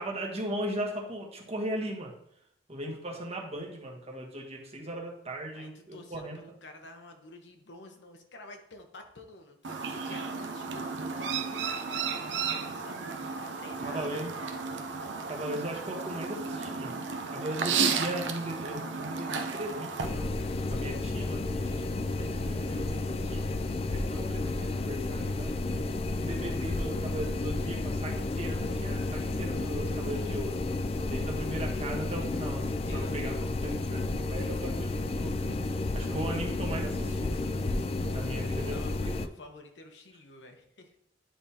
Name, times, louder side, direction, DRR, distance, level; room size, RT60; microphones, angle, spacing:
voice 1, 0.0-2.1 2.7-6.4 13.8-14.4 15.3-16.9 17.3-20.3 20.7-23.5 23.9-25.7 26.1-30.6 31.1-37.6 38.1-38.8 39.1-39.3, right 1 dB, 35° right, 0 dB, 1.2 m, -38 dB
voice 2, 5.5-14.2 32.8-33.5 38.3-40.9, left 2 dB, 75° left, 5 dB, 0.9 m, -50 dB
Chirp tweet, 9.6-20.1, right 5 dB, 90° right, 0.6 m, -33 dB
sound 1, 20.0-39.3, left 2 dB, 35° left, 0.3 m, -31 dB
9.9 x 3.5 x 2.8 m, 0.74 s
head